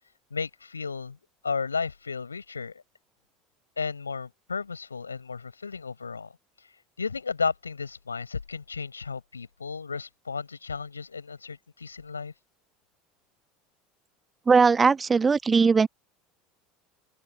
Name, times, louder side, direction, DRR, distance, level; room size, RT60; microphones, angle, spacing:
voice 1, 0.3-1.2 1.4-2.7 3.8-6.3 7.0-12.3, left 5 dB, 85° left, 5.7 m, -33 dB
voice 2, 14.5-15.9, right 5 dB, 20° right, 1.4 m, -19 dB
open air
figure-of-eight pair, 70°, 0 cm